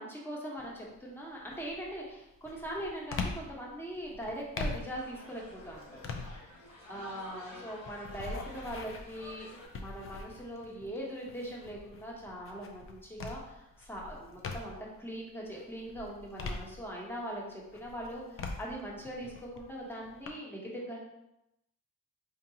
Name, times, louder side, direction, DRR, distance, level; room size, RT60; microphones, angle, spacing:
voice 1, 0.0-5.9 6.9-9.5 9.7-21.0, equal, 5° left, -3 dB, 1.0 m, -41 dB
sound 1, 0.6-1.0 1.5-15.0 15.4-17.3 17.7-20.3, left 3 dB, 40° left, 0.5 m, -43 dB
sound 2, 4.4-9.7, left 1 dB, 65° left, 1.4 m, -51 dB
3.7 x 2.8 x 2.8 m, 0.87 s
cardioid pair, 90°, 35 cm